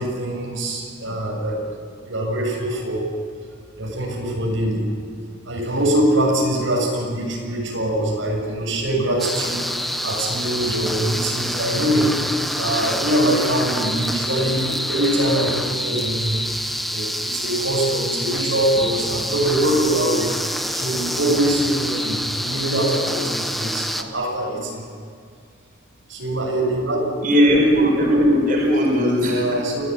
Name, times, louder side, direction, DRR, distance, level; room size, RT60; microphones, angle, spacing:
voice 1, 0.0-1.6 2.0-3.1 3.8-4.9 5.5-9.6 10.0-12.1 12.6-16.4 16.9-20.4 20.7-24.8 26.1-27.0 29.2-29.8, right 1 dB, 90° right, -1 dB, 7.0 m, -23 dB
sound 1, 9.2-24.0, equal, ahead, 1.1 m, -27 dB
voice 2, 27.2-29.5, equal, 45° right, -2 dB, 5.3 m, -17 dB
26.0 x 16.5 x 9.0 m, 2.2 s
head